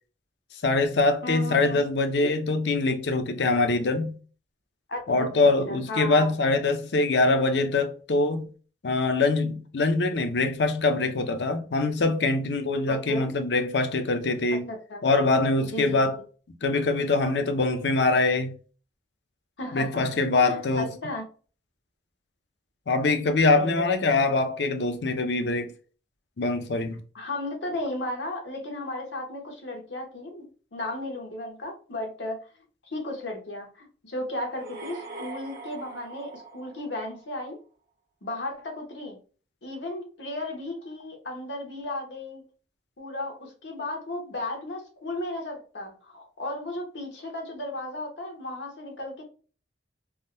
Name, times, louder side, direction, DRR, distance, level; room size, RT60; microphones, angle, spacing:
voice 1, 0.6-4.2 5.1-8.5 8.8-14.7 15.0-16.2 16.6-18.5 19.7-20.9 22.9-25.7 26.4-27.0, left 3 dB, 75° left, 0.6 m, -24 dB
voice 2, 1.2-1.8 4.9-5.3 5.7-6.3 12.9-13.3 14.7-15.0 15.7-16.1 19.6-20.1 20.4-21.2 23.5-23.8 27.1-30.5 30.7-32.4 32.8-37.6 38.2-39.2 39.6-42.4 43.0-49.2, left 1 dB, 90° left, 1.1 m, -34 dB
sound 1, 34.4-37.5, right 3 dB, 55° right, 0.9 m, -42 dB
3.5 x 2.2 x 2.6 m
head